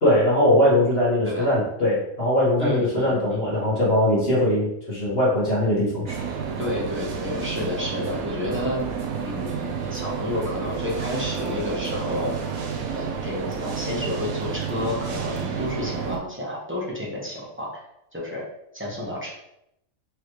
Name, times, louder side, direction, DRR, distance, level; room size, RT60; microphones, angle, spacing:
voice 1, 0.0-6.2, left 1 dB, 45° left, -8 dB, 1.7 m, -21 dB
voice 2, 2.6-3.4 6.6-8.8 9.2-12.3 12.9-17.7 18.1-18.4 18.7-19.3, left 1 dB, 10° right, -6 dB, 1.0 m, -30 dB
sound 1, 6.1-16.2, right 6 dB, 75° right, 1.1 m, -30 dB
4.7 x 3.0 x 3.2 m, 0.80 s
omnidirectional pair, 1.5 m